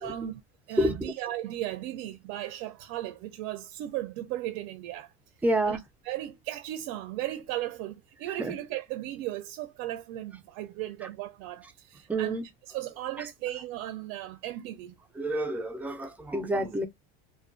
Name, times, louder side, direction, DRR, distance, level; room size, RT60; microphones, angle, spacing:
voice 1, 0.0-0.4 0.7-5.1 5.7-12.4 12.7-15.0, right 13 dB, 65° right, 0.5 m, -36 dB
voice 2, 0.8-1.1 5.4-5.8 8.4-8.5 12.1-12.4 15.2-16.9, right 1 dB, 5° right, 0.4 m, -28 dB
2.4 x 2.3 x 2.4 m
cardioid pair, 135°, 29 cm